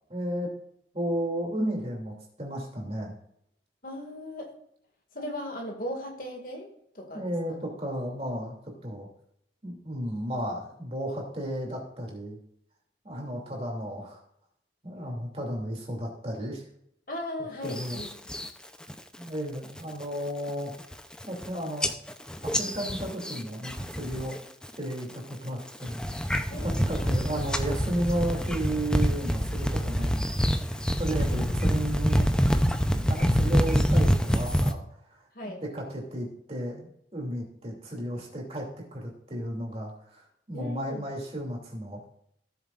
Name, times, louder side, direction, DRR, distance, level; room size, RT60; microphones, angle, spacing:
voice 1, 0.1-0.5 0.9-3.1 7.1-8.5 8.8-9.1 9.6-12.4 13.0-14.2 14.8-16.6 17.6-18.0 19.2-20.7 21.3-21.9 22.4-24.3 24.8-26.3 26.6-32.3 32.9-42.0, right 1 dB, 35° right, -1 dB, 2.7 m, -33 dB
voice 2, 3.8-4.5 5.1-6.7 7.0-7.6 14.9-15.2 17.1-18.1 26.5-27.2 35.3-35.6 40.5-41.0, left 1 dB, 50° left, 2 dB, 2.1 m, -38 dB
sound 1, 17.7-18.5 18.9-19.3 19.7-20.0 20.5-20.6 20.8-21.5 21.8-24.4 24.6-25.2 25.7-34.7, equal, 5° left, 0.6 m, -26 dB
17.5 x 7.1 x 2.5 m, 0.71 s
head